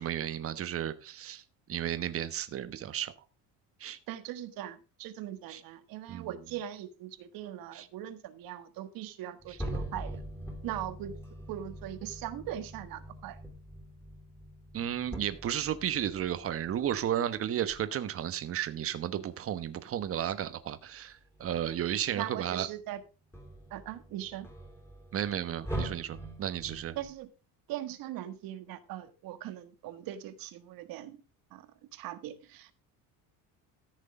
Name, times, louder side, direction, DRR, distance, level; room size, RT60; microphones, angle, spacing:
voice 1, 0.0-1.4 1.7-3.1 3.8-4.0 5.5-5.6 6.1-6.3 7.7-7.9 9.5-9.6 14.7-22.7 25.1-27.0, right 10 dB, 40° right, 1.1 m, -33 dB
voice 2, 4.1-10.2 10.6-11.1 11.5-13.4 22.1-23.0 23.7-24.5 26.9-27.3 27.7-31.2 31.5-31.7 31.9-32.7, right 12 dB, 65° right, 1.5 m, -40 dB
sound 1, 9.4-17.2 17.7-17.9 19.8-20.5 21.1-22.8 23.0-27.1, right 1 dB, 5° left, 3.5 m, -43 dB
14.0 x 6.5 x 4.9 m
cardioid pair, 150°, 37 cm